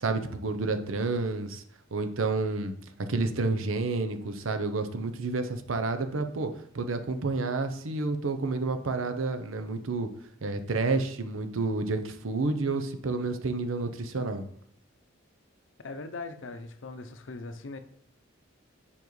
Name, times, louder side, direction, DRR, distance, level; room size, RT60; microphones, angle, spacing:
voice 1, 0.0-1.6 1.9-2.7 3.1-6.5 6.7-10.1 10.4-14.4, right 3 dB, 90° right, 8 dB, 0.7 m, -30 dB
voice 2, 15.8-17.8, left 3 dB, 70° left, 9 dB, 0.6 m, -40 dB
7.0 x 5.3 x 3.1 m, 0.63 s
head